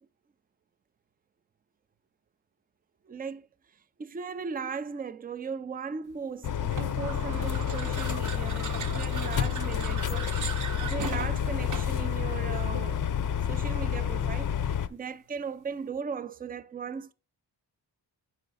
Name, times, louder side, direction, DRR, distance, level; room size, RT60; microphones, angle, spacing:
voice 1, 3.1-3.5 4.0-10.5 10.8-13.1 13.5-17.1, right 6 dB, 20° right, 0.4 m, -37 dB
sound 1, 6.4-14.9, left 8 dB, 45° left, 0.6 m, -29 dB
sound 2, 6.7-12.1, right 6 dB, 45° right, 0.8 m, -39 dB
7.5 x 5.0 x 4.0 m
wide cardioid pair, 105°, 45 cm